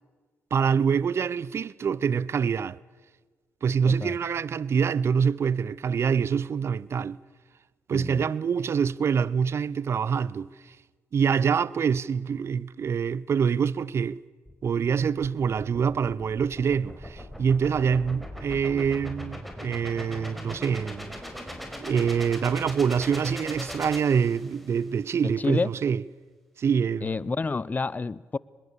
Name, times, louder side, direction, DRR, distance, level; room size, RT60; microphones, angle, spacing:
voice 1, 0.5-2.8 3.6-7.2 7.9-10.5 11.1-14.2 14.6-21.1 21.8-26.0 26.6-27.1, right 6 dB, 55° right, 0.6 m, -25 dB
voice 2, 3.8-4.2 7.9-8.2 25.4-25.7 27.0-28.4, left 4 dB, 30° left, 0.7 m, -29 dB
sound 1, 14.5-24.8, equal, ahead, 5.0 m, -40 dB
24.0 x 21.5 x 7.0 m
supercardioid pair, 55°, 5 cm